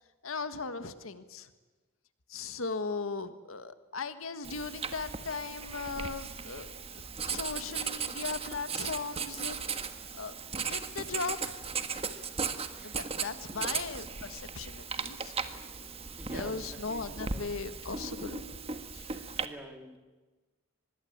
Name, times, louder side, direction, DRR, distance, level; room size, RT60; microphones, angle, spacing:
voice 1, 0.2-1.5 2.3-9.6 10.1-11.6 12.8-15.3 16.3-18.4 18.9-19.3, left 4 dB, 85° left, 11 dB, 1.6 m, -38 dB
Writing, 4.4-19.5, right 5 dB, 30° right, 1.5 m, -37 dB
sound 1, 8.4-17.6, left 1 dB, 25° left, 6.7 m, -65 dB
voice 2, 12.7-13.1 13.5-13.9 16.2-17.4 19.4-20.0, equal, 5° right, 5 dB, 2.6 m, -48 dB
25.0 x 21.0 x 8.7 m, 1.2 s
head